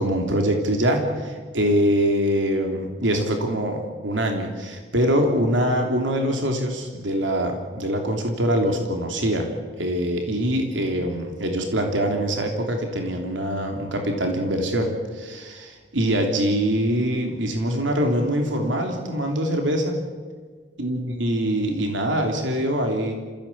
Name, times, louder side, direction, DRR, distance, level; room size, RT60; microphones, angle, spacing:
voice 1, 0.0-20.0 20.8-23.1, equal, 90° right, 3 dB, 3.2 m, -24 dB
28.0 x 16.0 x 8.5 m, 1.5 s
head